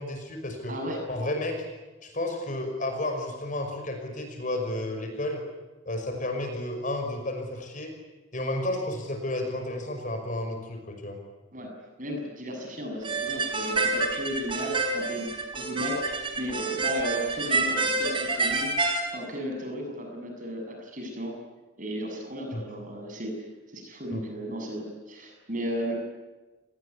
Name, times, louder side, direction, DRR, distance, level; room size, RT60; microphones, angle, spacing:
voice 1, 0.0-0.8 1.1-1.6 2.0-5.4 5.9-7.9 8.3-11.2 22.5-22.6 24.1-24.2, left 1 dB, 40° left, 4 dB, 5.6 m, -32 dB
voice 2, 0.7-1.0 11.5-11.7 12.0-18.7 19.1-21.3 21.8-23.3 23.7-25.9, equal, 40° right, 2 dB, 7.4 m, -35 dB
sound 1, 13.0-19.0, right 3 dB, 25° right, 3.9 m, -28 dB
29.0 x 19.5 x 9.9 m, 1.2 s
head